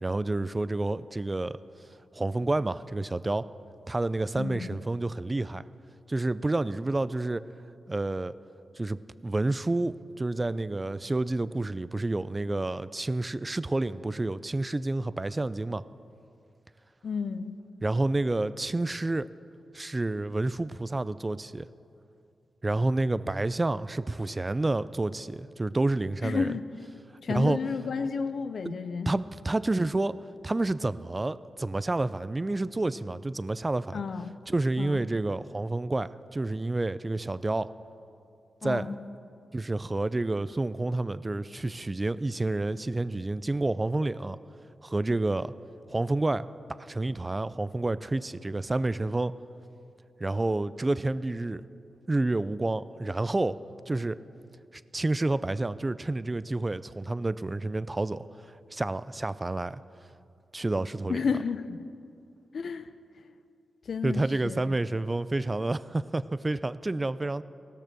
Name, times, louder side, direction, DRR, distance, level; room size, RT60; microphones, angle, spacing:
voice 1, 0.0-1.6 2.1-3.5 3.9-5.6 6.1-7.4 7.9-8.3 8.8-15.8 17.8-19.3 19.7-21.7 22.6-26.5 27.3-27.6 28.6-28.7 29.1-30.2 30.4-34.0 34.5-37.7 38.6-38.9 39.5-44.4 44.8-45.5 45.9-46.5 46.8-49.3 50.2-51.6 52.1-53.6 53.9-54.2 54.9-59.8 60.5-61.2 64.0-67.4, right 2 dB, 30° right, 16 dB, 0.4 m, -29 dB
voice 2, 4.4-4.8 17.0-17.6 26.2-26.7 27.2-29.1 33.9-34.3 34.8-35.0 38.6-39.0 61.1-61.8 62.5-62.9 63.9-64.6, left 5 dB, 65° left, 11 dB, 0.6 m, -31 dB
17.0 x 6.7 x 6.1 m, 2.6 s
supercardioid pair, 45°, 0 cm